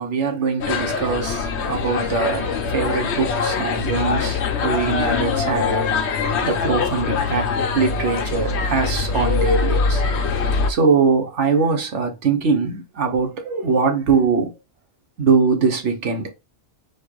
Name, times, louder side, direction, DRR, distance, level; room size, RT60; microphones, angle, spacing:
voice 1, 0.0-7.5 7.7-10.0 10.7-14.5 15.2-16.3, right 5 dB, 75° right, 1.4 m, -22 dB
sound 1, 0.6-10.7, left 5 dB, 70° left, 1.0 m, -23 dB
4.5 x 2.5 x 4.6 m
omnidirectional pair, 1.2 m